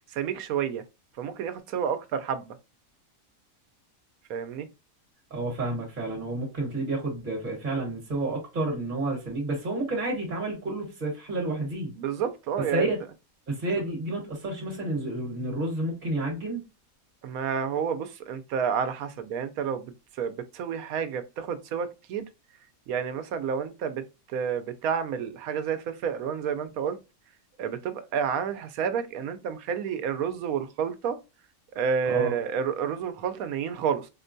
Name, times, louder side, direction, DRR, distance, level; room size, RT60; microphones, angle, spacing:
voice 1, 0.1-0.8 1.2-2.5 4.3-4.7 12.0-12.9 17.2-19.9 20.2-22.2 22.9-24.0 24.3-27.0 27.6-31.2 31.8-34.1, right 7 dB, 80° right, 1.0 m, -30 dB
voice 2, 5.3-11.9 12.7-13.0 13.5-16.6 32.0-32.3, right 2 dB, 40° right, 1.4 m, -30 dB
4.2 x 2.2 x 2.5 m
omnidirectional pair, 1.5 m